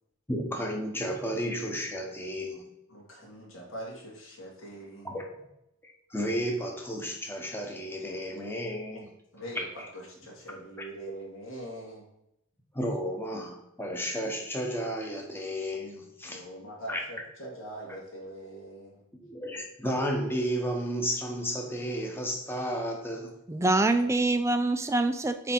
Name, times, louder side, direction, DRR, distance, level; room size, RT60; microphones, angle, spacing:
voice 1, 0.3-2.7 5.0-5.2 5.8-9.1 12.7-16.4 16.9-17.0 19.2-23.4, equal, 10° left, 1 dB, 1.0 m, -32 dB
voice 2, 2.9-5.2 8.9-9.1 9.3-12.1 16.2-19.0, right 1 dB, 70° left, -3 dB, 2.2 m, -43 dB
voice 3, 23.5-25.5, right 2 dB, 15° right, 9 dB, 0.4 m, -25 dB
8.3 x 3.4 x 4.4 m, 0.82 s
head